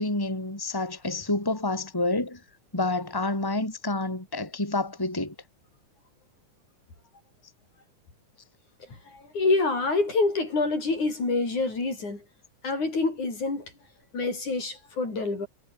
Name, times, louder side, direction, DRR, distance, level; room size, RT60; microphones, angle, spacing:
voice 1, 0.0-2.4 2.7-5.3, left 2 dB, 5° left, 4.3 m, -28 dB
voice 2, 9.1-12.2 12.6-13.7 14.1-15.5, left 3 dB, 70° left, 9.6 m, -26 dB
omnidirectional pair, 3.6 m